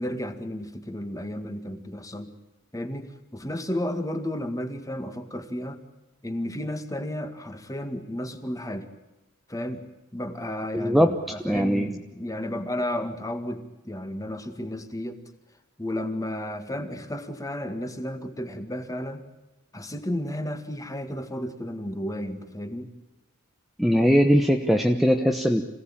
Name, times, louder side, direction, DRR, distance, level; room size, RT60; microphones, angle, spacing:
voice 1, 0.0-2.3 2.7-5.8 6.2-8.9 9.5-9.9 10.1-15.2 15.8-19.2 19.7-22.9, left 1 dB, 15° left, 7 dB, 2.0 m, -33 dB
voice 2, 10.7-11.1 11.4-11.9 23.8-25.6, equal, ahead, 4 dB, 1.1 m, -20 dB
26.5 x 17.5 x 8.9 m, 1.0 s
head